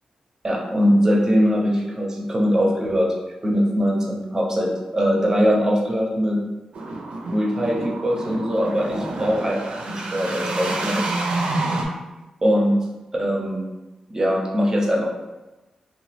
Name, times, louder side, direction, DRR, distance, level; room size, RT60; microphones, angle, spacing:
voice 1, 0.4-3.1 3.4-6.4 7.3-11.1 12.4-12.9 13.2-13.6 14.1-15.1, equal, 25° right, -1 dB, 0.6 m, -21 dB
sound 1, 6.7-11.9, right 2 dB, 70° right, 0.5 m, -28 dB
2.9 x 2.1 x 3.2 m, 1.1 s
cardioid pair, 80°, 2 cm